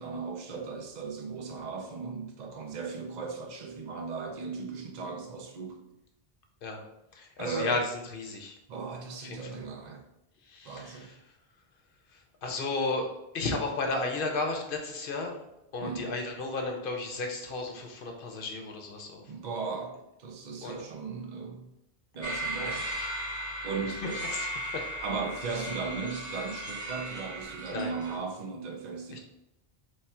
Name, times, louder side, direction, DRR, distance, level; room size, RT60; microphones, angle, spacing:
voice 1, 0.0-5.8 7.4-7.9 8.7-10.0 10.6-11.1 15.8-16.2 19.3-21.7 22.1-22.9 23.6-24.3 25.0-29.2, right 4 dB, 50° right, 3 dB, 0.6 m, -37 dB
voice 2, 7.1-7.8 8.1-8.6 9.2-9.4 10.5-11.1 12.4-13.1 13.3-15.4 15.7-19.2 20.6-20.8 22.7-22.8 24.3-24.5 24.7-24.9 27.7-27.9, left 3 dB, 65° left, 3 dB, 0.8 m, -33 dB
sound 1, 22.2-28.1, right 1 dB, 20° right, 1.0 m, -36 dB
3.1 x 2.3 x 4.2 m, 0.87 s
omnidirectional pair, 1.0 m